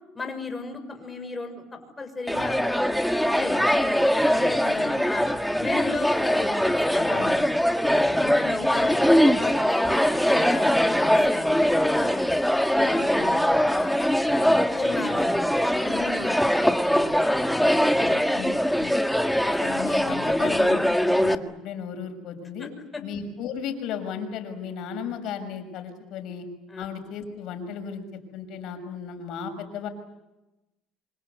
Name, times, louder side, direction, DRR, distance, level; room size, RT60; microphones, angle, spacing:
voice 1, 0.1-5.3 5.6-7.2 7.9-12.4 12.7-13.9 14.3-17.1 17.4-18.1 18.3-18.5 22.6-22.7 22.9-23.0 26.7-26.9, left 3 dB, 15° left, 5 dB, 6.4 m, -35 dB
sound 1, 2.3-21.3, equal, ahead, 1.6 m, -22 dB
voice 2, 7.1-7.4 7.9-8.4 13.2-13.4 18.0-18.9 19.6-22.7 23.0-26.5 26.8-29.9, left 7 dB, 65° left, 7 dB, 6.2 m, -35 dB
27.0 x 26.0 x 8.2 m, 1.0 s
supercardioid pair, 110°, 0 cm